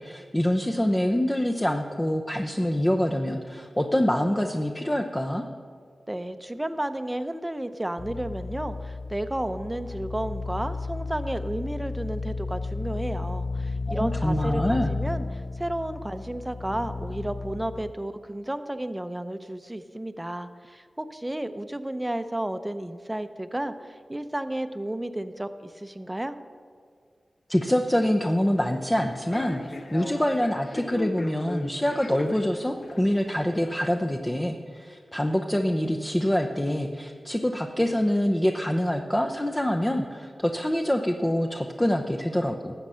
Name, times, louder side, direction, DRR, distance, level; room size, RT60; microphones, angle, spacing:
voice 1, 0.0-5.4 13.9-14.9 27.5-29.6 29.9-42.7, equal, 15° left, 3 dB, 0.7 m, -25 dB
voice 2, 6.1-26.4, right 1 dB, 15° right, 10 dB, 0.7 m, -32 dB
sound 1, 8.0-17.9, left 3 dB, 45° left, 0.4 m, -33 dB
Human voice / Subway metro underground, 28.4-33.9, left 2 dB, 65° left, 0.9 m, -40 dB
12.5 x 7.7 x 5.6 m, 2.1 s
cardioid pair, 45°, 0 cm